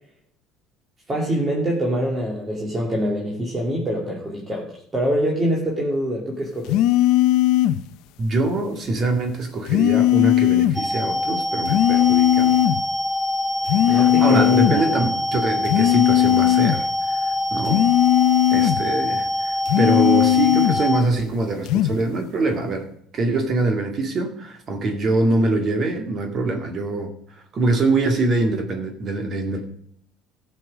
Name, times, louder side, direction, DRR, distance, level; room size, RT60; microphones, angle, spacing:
voice 1, 1.1-6.8 13.8-15.0, equal, 20° right, -2 dB, 2.5 m, -25 dB
sound 1, 6.7-7.8 9.7-10.8 11.7-12.8 13.7-14.8 15.7-16.8 17.7-18.8 19.7-20.8 21.7-22.0, left 14 dB, 70° left, 0.6 m, -18 dB
voice 2, 8.2-12.6 13.9-17.9 18.5-22.9 23.1-27.1 27.5-29.6, right 2 dB, 40° right, 5 dB, 2.1 m, -24 dB
sound 2, 10.7-21.0, left 2 dB, ahead, 1.0 m, -24 dB
14.0 x 6.2 x 6.3 m, 0.67 s
supercardioid pair, 105°, 0 cm